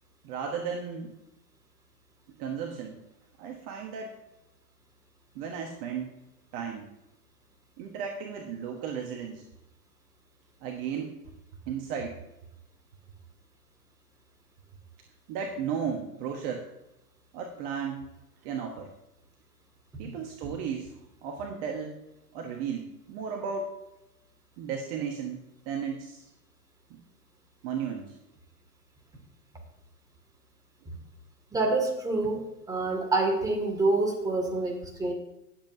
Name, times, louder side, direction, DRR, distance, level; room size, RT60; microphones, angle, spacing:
voice 1, 0.2-1.1 2.4-3.0 3.4-4.1 5.3-6.2 6.5-6.9 7.8-9.4 10.6-11.1 11.7-12.2 15.3-16.7 17.3-18.1 18.4-18.9 20.0-21.9 22.3-23.7 24.6-26.3 26.9-27.0 27.6-28.1, right 6 dB, 35° right, 2 dB, 1.2 m, -34 dB
voice 2, 31.5-35.1, right 2 dB, 5° right, 0 dB, 2.1 m, -27 dB
19.0 x 7.6 x 2.7 m, 0.90 s
hypercardioid pair, 125°, 49 cm